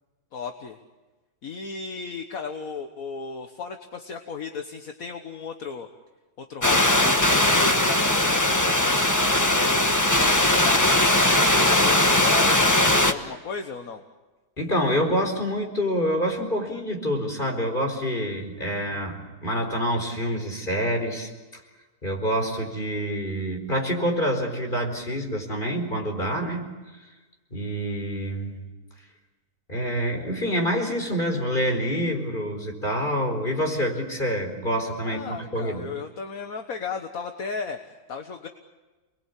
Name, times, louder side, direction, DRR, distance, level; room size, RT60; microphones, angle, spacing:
voice 1, 0.3-0.8 1.4-5.9 6.4-9.1 9.5-10.9 11.7-14.0 35.0-38.5, left 5 dB, 60° left, 5 dB, 1.8 m, -35 dB
sound 1, 6.6-13.1, left 1 dB, 10° left, 1.2 m, -20 dB
voice 2, 14.6-21.3 22.0-26.7 27.5-28.6 29.7-35.9, equal, 30° left, 3 dB, 4.7 m, -27 dB
29.0 x 21.5 x 8.4 m, 1.2 s
omnidirectional pair, 1.7 m